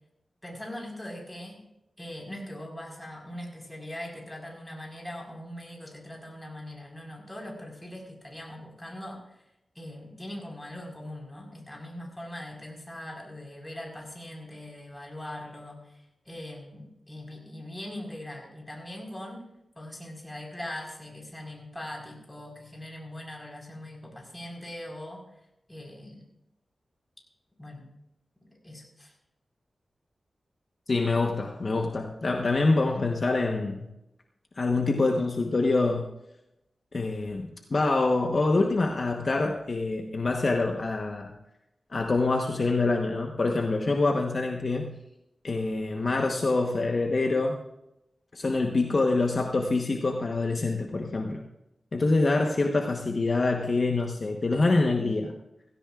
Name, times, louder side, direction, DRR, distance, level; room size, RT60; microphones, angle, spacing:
voice 1, 0.4-1.6 2.0-9.4 9.7-19.4 19.7-25.2 25.7-26.3 27.6-27.9 28.6-29.1, left 1 dB, 10° left, -1 dB, 4.7 m, -41 dB
voice 2, 30.9-33.9 34.6-36.1 36.9-41.3 41.9-45.0 45.4-47.6 48.3-51.4 51.9-55.3, left 3 dB, 55° left, 2 dB, 1.1 m, -25 dB
17.0 x 16.5 x 2.5 m, 0.88 s
wide cardioid pair, 85°, 0 cm